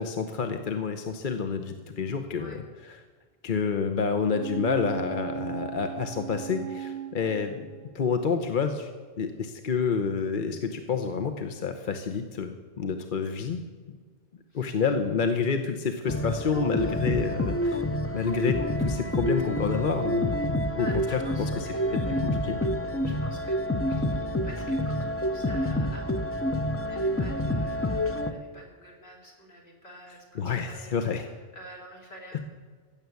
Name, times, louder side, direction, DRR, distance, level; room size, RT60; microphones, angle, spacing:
voice 1, 0.0-2.6 2.9-3.0 3.4-7.7 7.9-8.9 9.2-13.6 13.9-14.0 14.5-17.8 18.1-20.3 20.8-21.2 21.6-21.7 22.4-22.6 30.4-31.2, left 5 dB, 50° left, 6 dB, 1.0 m, -28 dB
sound 1, 4.3-8.1 8.4-8.5, right 11 dB, 90° right, 1.0 m, -37 dB
sound 2, 16.1-28.3, left 1 dB, 15° left, 0.6 m, -28 dB
voice 2, 20.7-22.3 23.0-32.4, equal, 70° left, -1 dB, 3.6 m, -48 dB
16.0 x 7.1 x 9.3 m, 1.5 s
omnidirectional pair, 1.1 m